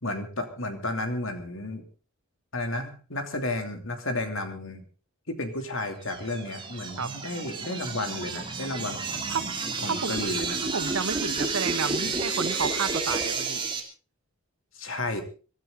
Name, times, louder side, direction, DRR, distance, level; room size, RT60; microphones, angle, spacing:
voice 1, 0.0-1.8 2.5-4.8 5.3-9.6 9.8-10.6 14.7-15.2, left 2 dB, 65° left, 2.9 m, -32 dB
sound 1, 5.8-13.8, right 4 dB, 20° right, 2.8 m, -31 dB
voice 2, 10.7-13.6, right 5 dB, 80° right, 1.0 m, -31 dB
24.5 x 13.0 x 3.9 m
head